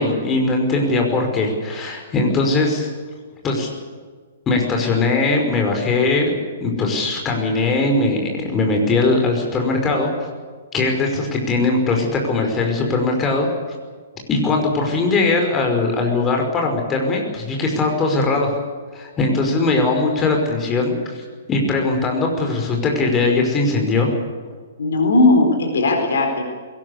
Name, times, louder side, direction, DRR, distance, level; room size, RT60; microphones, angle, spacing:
voice 1, 0.0-2.9 3.4-3.7 4.5-6.3 6.6-10.1 10.7-13.5 14.3-18.5 18.9-21.2 21.5-24.1, left 3 dB, 20° left, 2 dB, 5.3 m, -20 dB
voice 2, 24.8-26.4, left 2 dB, 60° left, 5 dB, 4.4 m, -17 dB
21.5 x 18.5 x 8.4 m, 1.5 s
figure-of-eight pair, 115°, 0 cm